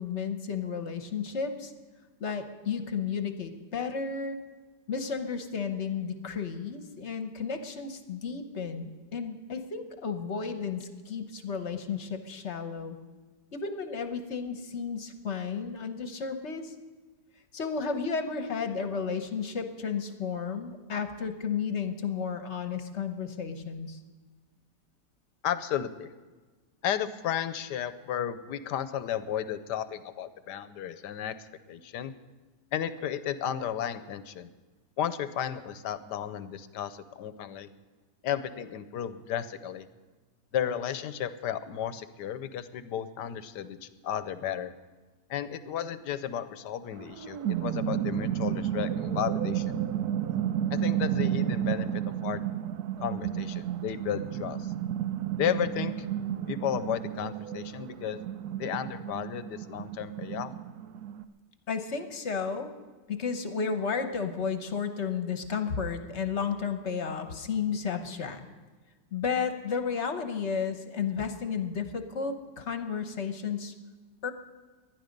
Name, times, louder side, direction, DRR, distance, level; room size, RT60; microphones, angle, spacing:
voice 1, 0.0-1.7 2.2-4.4 4.9-13.0 13.5-16.7 17.5-24.0 61.7-62.7 63.1-68.5 69.1-73.7 74.2-74.3, left 6 dB, 45° left, 7 dB, 1.2 m, -33 dB
voice 2, 25.4-26.1 26.8-31.3 31.7-32.1 32.7-34.5 35.0-37.7 38.2-39.9 40.5-44.7 45.3-49.8 50.7-52.5 53.0-54.7 55.4-56.1 56.5-58.2 58.6-60.5, left 9 dB, 85° left, 13 dB, 1.3 m, -33 dB
sound 1, 47.0-61.2, right 10 dB, 70° right, 1.2 m, -32 dB
19.5 x 11.5 x 5.3 m, 1.3 s
omnidirectional pair, 1.8 m